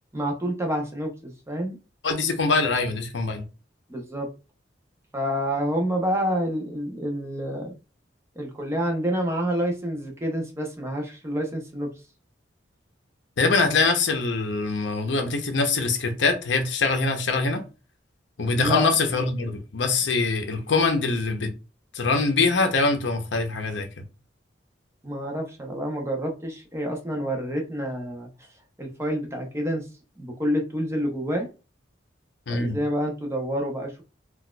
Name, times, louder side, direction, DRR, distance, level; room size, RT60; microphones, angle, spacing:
voice 1, 0.1-1.8 3.9-4.3 5.1-7.7 8.4-11.9 18.6-18.9 25.0-28.3 28.8-29.9 30.2-31.5 32.5-34.0, equal, 15° right, 0.7 m, -28 dB
voice 2, 2.0-3.4 13.4-17.6 18.4-21.5 21.9-23.9 32.5-32.8, left 3 dB, 70° left, 0.7 m, -23 dB
4.0 x 2.4 x 2.2 m
head